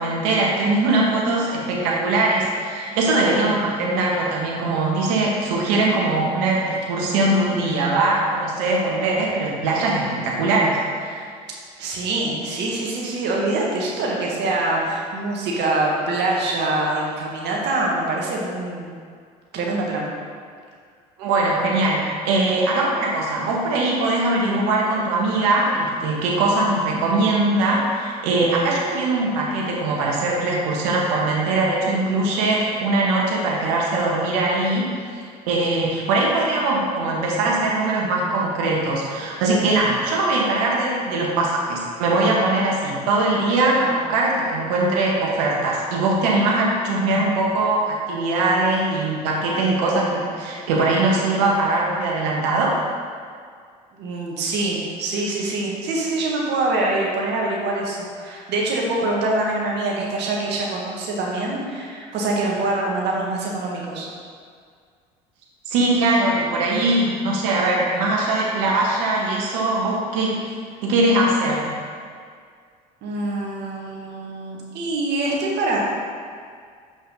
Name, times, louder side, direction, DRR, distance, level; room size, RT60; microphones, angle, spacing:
voice 1, 0.0-11.3 21.2-52.8 65.7-70.6 70.8-71.7, right 2 dB, 70° right, -3 dB, 1.5 m, -21 dB
voice 2, 11.8-18.9 19.5-20.1 53.9-64.1 73.0-75.8, right 2 dB, 55° right, -2 dB, 1.7 m, -24 dB
7.5 x 5.6 x 3.9 m, 2.1 s
hypercardioid pair, 65°, 20 cm